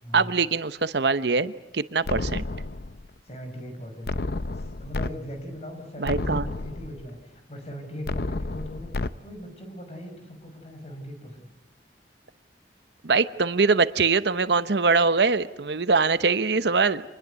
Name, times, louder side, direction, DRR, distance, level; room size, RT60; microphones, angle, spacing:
voice 1, 0.1-2.4 6.0-6.5 13.0-17.0, right 4 dB, 70° right, 13 dB, 0.9 m, -23 dB
sound 1, 2.1-3.1 4.1-5.1 5.5-5.6 6.0-7.1 8.1-9.1, left 2 dB, 55° left, 0.7 m, -30 dB
voice 2, 3.3-4.1 4.5-8.9 9.2-11.5, equal, 35° left, 5 dB, 6.0 m, -39 dB
26.5 x 21.0 x 8.2 m, 1.1 s
head